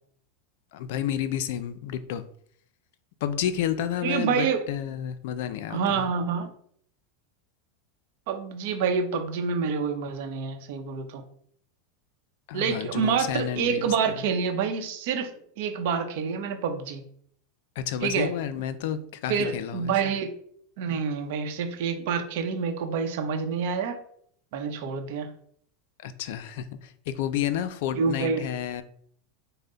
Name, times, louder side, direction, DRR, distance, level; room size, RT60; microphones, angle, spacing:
voice 1, 0.7-2.2 3.2-6.1 12.5-14.2 17.8-20.1 26.0-28.8, left 10 dB, 70° left, 12 dB, 0.4 m, -31 dB
voice 2, 4.0-4.6 5.7-6.5 8.3-11.2 12.5-15.3 15.6-17.0 18.0-18.3 19.3-20.3 20.8-24.0 24.5-25.3 27.9-28.4, right 6 dB, 65° right, 6 dB, 0.7 m, -27 dB
5.5 x 2.1 x 3.8 m, 0.63 s
supercardioid pair, 135°, 0 cm